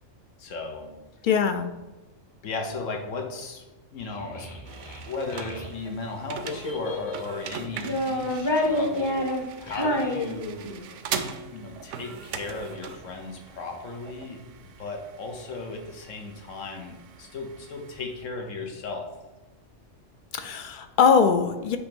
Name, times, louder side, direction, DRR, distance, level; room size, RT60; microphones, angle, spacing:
voice 1, 0.4-0.9 2.4-3.6 3.9-4.5 5.1-9.3 9.6-10.8 11.5-14.4 14.8-19.1, left 3 dB, 80° left, 2 dB, 1.3 m, -36 dB
voice 2, 1.2-1.7 20.3-21.8, left 6 dB, 60° left, 8 dB, 0.5 m, -21 dB
Child speech kid speaking, 4.0-5.7 6.4-7.3 7.8-10.9, left 1 dB, 25° left, 0.8 m, -29 dB
sound 1, 4.7-18.3, right 7 dB, 75° right, 0.9 m, -41 dB
8.4 x 3.0 x 5.3 m, 1.1 s
omnidirectional pair, 1.3 m